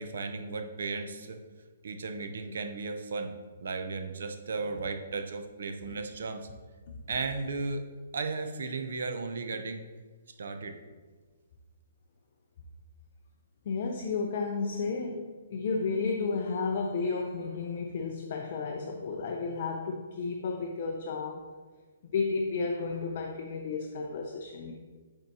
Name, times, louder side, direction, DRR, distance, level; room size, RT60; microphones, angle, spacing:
voice 1, 0.0-1.4 1.8-3.3 3.6-6.5 7.1-7.9 8.1-9.8 10.4-10.8, right 4 dB, 60° right, 7 dB, 0.5 m, -35 dB
voice 2, 13.7-21.4 22.0-24.7, left 4 dB, 35° left, 2 dB, 0.4 m, -32 dB
7.8 x 4.4 x 2.7 m, 1.4 s
hypercardioid pair, 175°, 0 cm